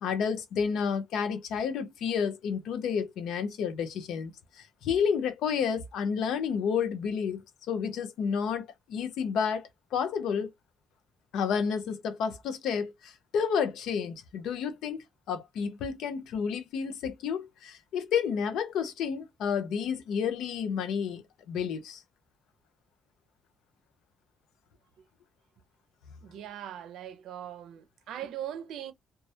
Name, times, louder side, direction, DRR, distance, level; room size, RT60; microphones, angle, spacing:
voice 1, 0.0-4.3 4.6-10.5 11.3-21.2 21.5-22.0, left 6 dB, 80° left, 0.5 m, -30 dB
voice 2, 26.2-28.9, right 10 dB, 80° right, 0.5 m, -40 dB
2.2 x 2.0 x 2.7 m
cardioid pair, 90°, 0 cm